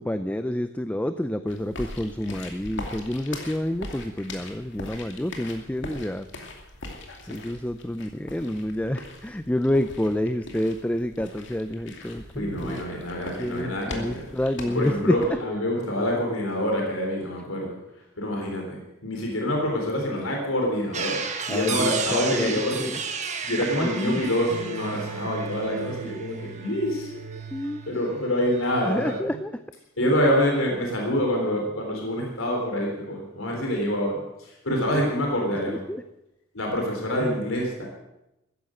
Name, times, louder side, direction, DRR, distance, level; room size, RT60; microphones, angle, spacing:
voice 1, 0.0-6.3 7.3-12.8 13.4-15.4 21.5-23.0 23.6-24.2 27.5-27.8 28.9-29.6 34.9-35.1 35.7-36.0 37.2-37.5, left 1 dB, 5° left, 10 dB, 0.5 m, -28 dB
sound 1, 1.5-15.3, left 2 dB, 60° left, 2.6 m, -41 dB
voice 2, 12.4-14.2 14.7-17.8 18.2-21.2 21.5-22.8 23.4-27.1 27.9-29.1 30.0-35.8 36.5-37.8, equal, 90° left, 0 dB, 3.7 m, -26 dB
sound 2, 20.9-28.1 28.4-29.2, right 6 dB, 35° right, 1.5 m, -34 dB
sound 3, 24.5-28.6, right 6 dB, 85° right, 0.7 m, -39 dB
14.5 x 10.5 x 7.7 m, 0.91 s
head